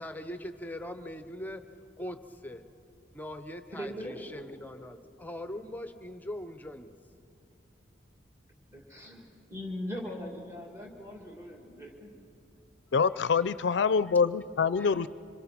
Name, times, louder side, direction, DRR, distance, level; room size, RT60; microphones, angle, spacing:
voice 1, 0.0-1.6 2.0-2.7 3.1-6.9 13.1-13.4 14.8-15.1, left 1 dB, 10° left, 9 dB, 0.7 m, -41 dB
voice 2, 3.7-4.2 4.5-4.6 8.7-12.1, left 1 dB, 15° right, 0 dB, 2.1 m, -40 dB
voice 3, 12.9-15.1, left 5 dB, 70° left, 16 dB, 0.4 m, -25 dB
26.0 x 21.5 x 5.9 m, 2.9 s
head